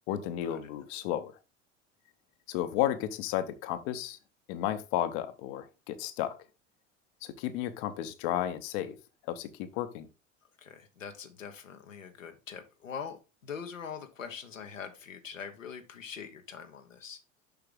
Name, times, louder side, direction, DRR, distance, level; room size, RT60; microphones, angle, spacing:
voice 1, 0.1-1.3 2.5-4.2 4.5-6.4 7.2-9.0 9.3-10.1, left 12 dB, 50° left, 0.9 m, -33 dB
voice 2, 10.6-13.2 13.4-17.2, left 6 dB, 80° left, 1.0 m, -43 dB
7.0 x 5.7 x 3.7 m
figure-of-eight pair, 70°, 38 cm